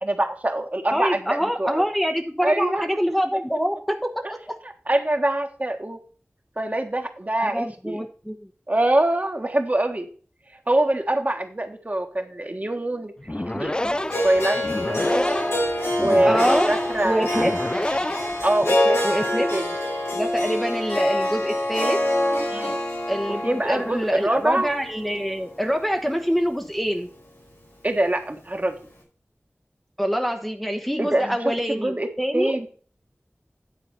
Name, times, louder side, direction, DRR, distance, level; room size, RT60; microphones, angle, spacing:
voice 1, 0.0-1.8 2.4-2.8 4.2-4.3 4.9-6.0 6.6-8.0 8.7-10.1 10.7-15.3 16.0-17.4 18.4-19.0 19.2-19.7 22.5-22.8 23.4-24.7 27.8-28.8 31.0-32.1 32.3-32.7, right 1 dB, 35° right, 4 dB, 1.4 m, -24 dB
voice 2, 0.9-4.0 4.5-4.6 7.4-8.4 16.2-16.7 17.0-17.5 19.0-19.5 20.1-22.0 23.1-27.1 30.0-32.6, equal, 5° left, 4 dB, 0.9 m, -25 dB
sound 1, 13.2-18.9, left 1 dB, 20° left, 0.3 m, -29 dB
Harp, 14.1-26.2, left 1 dB, 90° left, 2.7 m, -26 dB
9.5 x 4.0 x 6.9 m, 0.41 s
wide cardioid pair, 45°, 5 cm